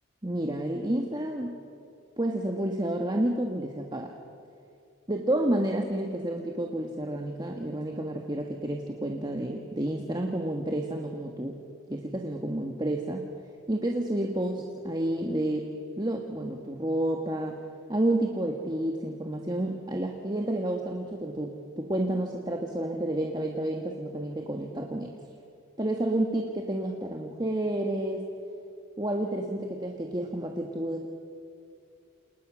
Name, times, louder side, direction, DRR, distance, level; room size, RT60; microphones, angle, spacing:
voice 1, 0.2-1.5 2.2-4.1 5.1-11.6 11.9-13.3 13.7-17.6 17.9-25.1 25.8-28.3 29.0-31.1, right 1 dB, 20° right, 2 dB, 1.6 m, -30 dB
28.5 x 28.5 x 6.3 m, 2.5 s
head